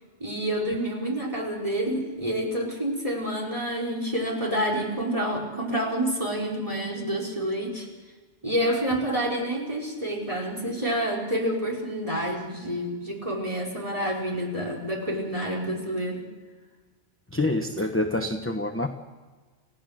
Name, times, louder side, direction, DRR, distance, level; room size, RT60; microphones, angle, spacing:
voice 1, 0.2-7.9 8.4-16.3, right 1 dB, 30° right, 0 dB, 4.8 m, -28 dB
voice 2, 17.3-18.9, left 1 dB, 10° left, 5 dB, 1.0 m, -26 dB
30.0 x 16.5 x 6.5 m, 1.4 s
omnidirectional pair, 1.2 m